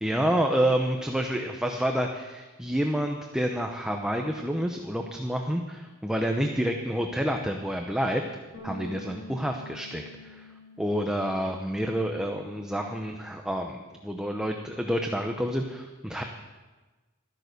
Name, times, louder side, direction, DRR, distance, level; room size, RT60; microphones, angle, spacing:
voice 1, 0.0-8.3 8.6-10.5 10.8-16.2, equal, 5° right, 3 dB, 0.8 m, -28 dB
Bass guitar, 8.5-14.8, left 1 dB, 45° left, 4.1 m, -48 dB
13.5 x 10.5 x 6.7 m, 1.2 s
head